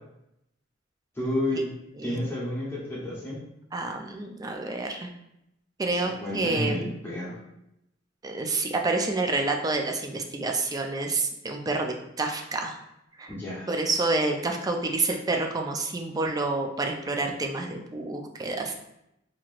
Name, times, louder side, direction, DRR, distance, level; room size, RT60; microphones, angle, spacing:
voice 1, 1.2-3.4 6.0-7.4 13.3-13.7, left 1 dB, 10° left, -7 dB, 0.9 m, -31 dB
voice 2, 1.9-2.3 3.7-5.1 5.8-7.0 8.2-12.8 13.2-13.3 13.7-18.7, right 3 dB, 20° right, 3 dB, 0.4 m, -28 dB
4.4 x 2.9 x 2.4 m, 0.83 s
head